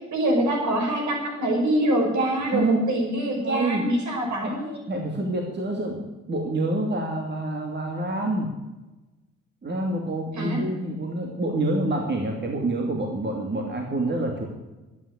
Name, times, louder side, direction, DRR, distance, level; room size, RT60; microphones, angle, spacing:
voice 1, 0.1-4.8 10.4-10.6, right 1 dB, 70° right, 1 dB, 6.0 m, -24 dB
voice 2, 2.5-2.8 3.4-3.8 4.4-4.5 4.9-8.5 9.6-14.5, right 2 dB, 35° right, 1 dB, 2.6 m, -27 dB
13.0 x 9.6 x 8.2 m, 1.1 s
cardioid pair, 90°, 30 cm